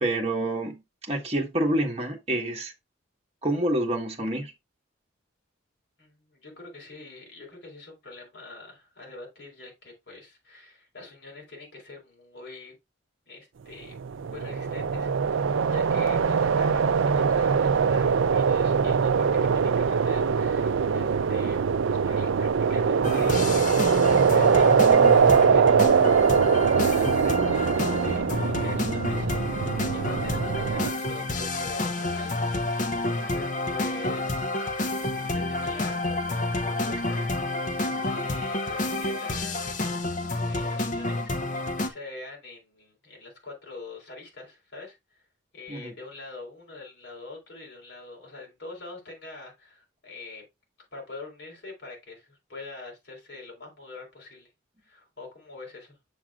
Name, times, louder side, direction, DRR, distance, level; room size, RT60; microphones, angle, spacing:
voice 1, 0.0-2.7 3.4-4.5 45.7-45.9, right 1 dB, 30° right, 1.4 m, -27 dB
voice 2, 6.0-12.7 13.3-13.9 14.3-19.3 19.5-21.6 21.9-23.6 24.0-34.7 35.0-37.2 38.0-39.8 40.5-41.4 41.8-45.2 45.5-50.5 50.9-54.5 54.8-56.0, left 3 dB, 55° left, 4.1 m, -44 dB
sound 1, 13.9-30.9, right 6 dB, 75° right, 0.4 m, -22 dB
sound 2, 23.0-41.9, left 2 dB, 40° left, 0.8 m, -29 dB
7.3 x 7.2 x 2.4 m
head